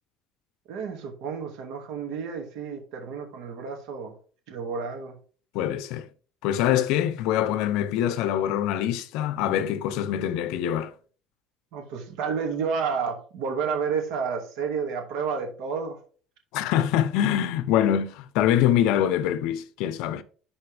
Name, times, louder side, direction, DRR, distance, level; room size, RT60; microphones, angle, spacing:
voice 1, 0.7-4.1 4.5-5.1 11.7-16.0, right 6 dB, 70° right, 2.3 m, -30 dB
voice 2, 5.5-6.1 6.4-10.9 16.5-20.2, left 10 dB, 70° left, 0.7 m, -24 dB
11.5 x 4.2 x 3.4 m
cardioid pair, 165°, 0 cm